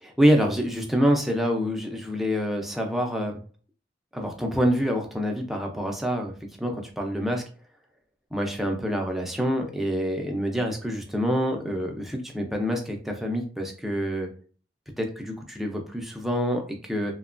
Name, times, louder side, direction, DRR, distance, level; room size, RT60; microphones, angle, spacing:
voice 1, 0.0-3.4 4.1-6.3 6.6-7.4 8.3-14.3 15.0-17.1, equal, ahead, 1 dB, 0.4 m, -26 dB
2.8 x 2.2 x 2.4 m, 0.41 s
head